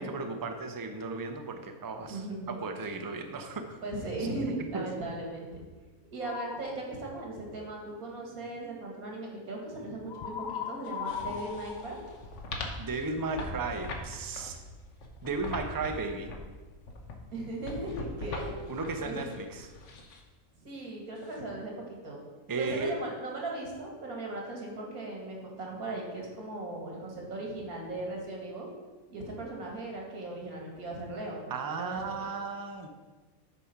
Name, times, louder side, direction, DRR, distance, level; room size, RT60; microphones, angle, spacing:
voice 1, 0.0-3.8 4.2-4.9 12.8-14.6 15.2-16.3 18.7-19.7 22.5-23.0 31.5-32.9, right 3 dB, 25° right, 6 dB, 0.4 m, -35 dB
voice 2, 2.1-2.5 3.8-5.4 6.1-12.0 17.3-18.6 19.0-19.2 20.6-22.2 22.6-28.7 29.1-32.0, right 2 dB, 90° right, -1 dB, 2.4 m, -38 dB
sound 1, 6.2-6.8 10.1-12.8, left 7 dB, 75° left, 0.4 m, -38 dB
sound 2, 10.8-20.2 21.2-21.4, left 2 dB, 60° left, 1.3 m, -42 dB
8.3 x 5.1 x 5.8 m, 1.3 s
omnidirectional pair, 1.5 m